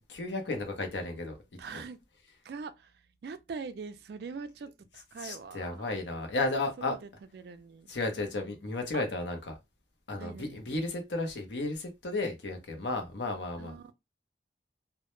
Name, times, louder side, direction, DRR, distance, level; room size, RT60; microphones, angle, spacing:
voice 1, 0.1-1.4 1.7-1.8 5.2-7.0 7.9-9.6 10.1-13.7, left 2 dB, 70° left, 0.7 m, -33 dB
voice 2, 1.6-2.0 2.4-2.9 3.2-5.8 6.9-7.9 8.9-9.0 10.2-10.6 13.6-13.9, right 5 dB, 55° right, 0.3 m, -42 dB
2.1 x 2.0 x 2.9 m
head